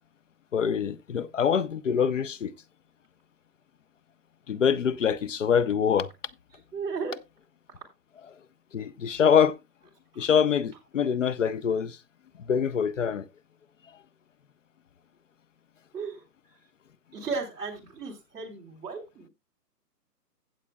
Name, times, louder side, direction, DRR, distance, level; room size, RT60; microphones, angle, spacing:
voice 1, 0.5-2.5 4.5-6.1 8.7-9.6 10.2-12.0 12.4-13.3, left 7 dB, 50° left, 0.6 m, -24 dB
voice 2, 6.7-7.1 10.1-10.3 15.9-16.2 17.1-19.3, right 4 dB, 10° right, 2.3 m, -35 dB
16.0 x 7.5 x 2.3 m
hypercardioid pair, 165°, 49 cm